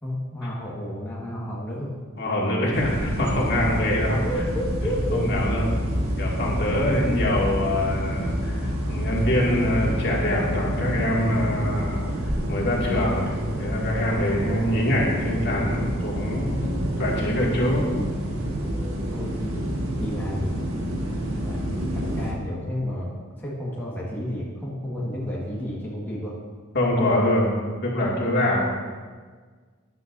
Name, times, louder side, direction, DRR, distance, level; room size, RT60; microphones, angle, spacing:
voice 1, 0.0-1.9 4.2-5.2 7.0-7.1 19.1-19.6 20.0-26.3, equal, 10° left, -7 dB, 1.6 m, -32 dB
voice 2, 2.2-4.2 5.1-5.6 6.2-17.9 26.7-27.5 27.8-28.6, left 1 dB, 55° left, -4 dB, 2.4 m, -24 dB
sound 1, 2.7-22.3, equal, 85° right, 1.7 m, -28 dB
13.0 x 10.5 x 2.7 m, 1.5 s
head